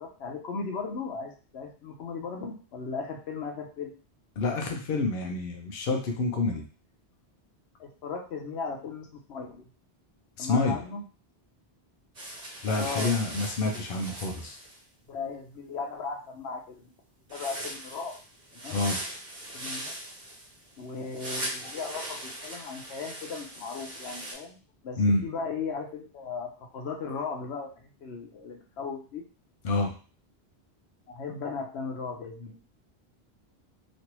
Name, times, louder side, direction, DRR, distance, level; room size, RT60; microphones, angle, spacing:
voice 1, 0.0-3.9 7.8-9.7 10.4-11.0 12.7-13.1 15.1-17.0 17.3-18.1 18.6-18.8 19.5-20.0 20.8-24.6 24.8-29.2 31.1-32.6, left 5 dB, 85° left, 1 dB, 1.0 m, -37 dB
voice 2, 4.4-6.6 10.4-10.8 12.6-14.6 18.7-19.0 25.0-25.2 29.6-29.9, left 3 dB, 65° left, 2 dB, 0.8 m, -27 dB
sound 1, 12.1-14.8 17.3-24.3, right 1 dB, 45° right, 0.9 m, -39 dB
3.1 x 2.6 x 2.9 m, 0.37 s
omnidirectional pair, 1.1 m